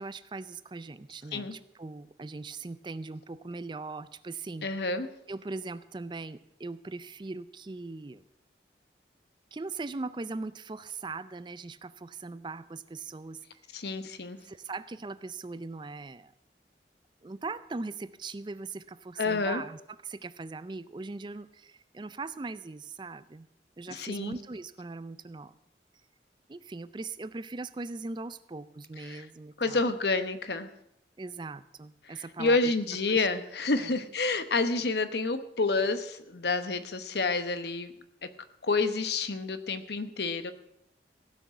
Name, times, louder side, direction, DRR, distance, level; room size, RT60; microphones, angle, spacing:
voice 1, 0.0-4.9 5.3-8.2 9.5-13.4 14.4-16.3 17.2-23.5 23.8-25.6 26.5-29.8 31.2-32.7 33.1-33.3 33.8-33.9, right 3 dB, 25° right, 15 dB, 0.4 m, -40 dB
voice 2, 4.6-5.1 13.7-14.4 19.2-19.6 23.9-24.3 29.0-29.2 29.6-30.7 32.4-37.9 38.6-40.5, left 3 dB, 70° left, 10 dB, 1.0 m, -29 dB
16.0 x 6.4 x 8.2 m, 0.79 s
head